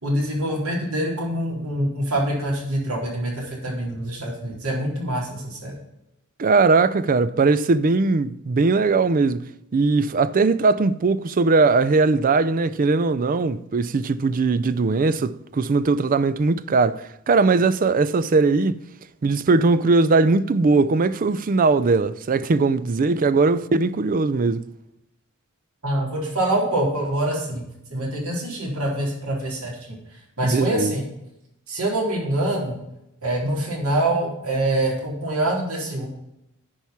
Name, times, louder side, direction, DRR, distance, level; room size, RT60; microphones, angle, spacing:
voice 1, 0.0-5.7 25.8-27.6 27.9-30.0 30.4-31.1 31.7-32.8 33.2-36.1, right 1 dB, 70° right, 3.9 m, -25 dB
voice 2, 6.4-18.8 19.2-24.7 30.4-30.9, right 3 dB, 40° right, 0.4 m, -20 dB
10.0 x 4.7 x 7.0 m
head